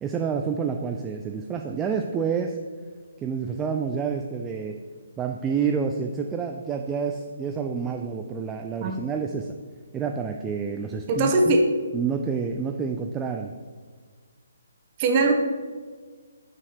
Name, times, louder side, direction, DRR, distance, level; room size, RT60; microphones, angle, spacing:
voice 1, 0.0-2.6 3.2-4.8 5.2-9.5 9.9-11.6 11.9-13.5, right 6 dB, 15° right, 3 dB, 0.3 m, -28 dB
voice 2, 11.1-11.6 15.0-15.3, right 2 dB, 30° right, 3 dB, 0.9 m, -20 dB
6.0 x 4.6 x 4.7 m, 1.5 s
hypercardioid pair, 145°, 0 cm